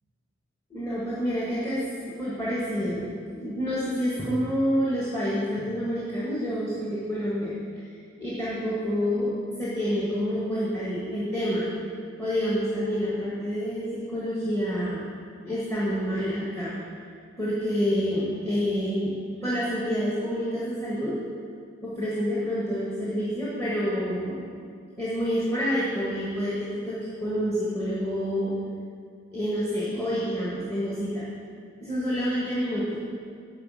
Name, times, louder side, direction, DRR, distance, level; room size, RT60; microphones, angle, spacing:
voice 1, 0.7-1.8 2.2-7.5 8.2-9.3 9.6-11.7 12.2-15.0 15.4-16.7 17.4-19.2 19.4-21.1 21.8-24.4 25.0-28.5 29.3-31.3 31.8-33.0, equal, 15° left, -9 dB, 1.4 m, -28 dB
9.5 x 4.1 x 6.2 m, 2.2 s
head